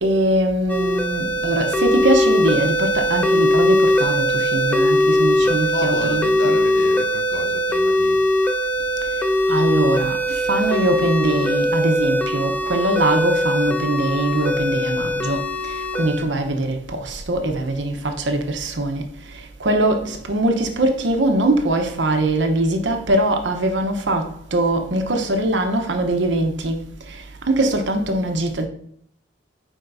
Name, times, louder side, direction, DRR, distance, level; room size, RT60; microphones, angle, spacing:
voice 1, 0.0-6.6 9.5-10.2 10.5-15.4 16.0-19.0 19.6-24.2 24.5-26.8 27.5-28.7, right 1 dB, 80° right, 0.9 m, -21 dB
sound 1, 0.7-16.2, left 1 dB, 10° left, 0.4 m, -20 dB
voice 2, 5.4-8.3 17.7-17.8 18.2-18.4, left 2 dB, 80° left, 0.9 m, -31 dB
8.8 x 4.5 x 2.6 m
head